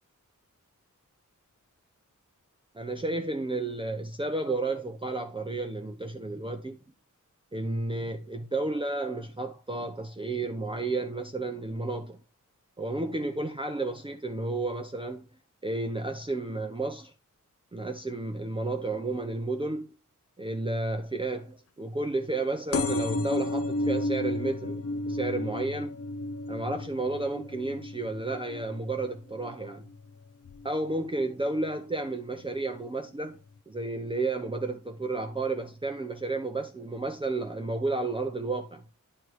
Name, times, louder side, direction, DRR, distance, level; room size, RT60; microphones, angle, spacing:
voice 1, 2.7-6.8 7.5-12.2 12.8-15.3 15.6-17.1 17.7-19.9 20.4-25.9 26.5-29.8 30.6-33.4 33.7-38.8, right 2 dB, 15° right, 0.6 m, -32 dB
sound 1, 22.7-30.0 30.4-30.9 31.8-31.9 32.1-32.2 32.4-32.5, left 2 dB, 50° left, 0.5 m, -32 dB
9.4 x 3.3 x 4.5 m
wide cardioid pair, 110°, 32 cm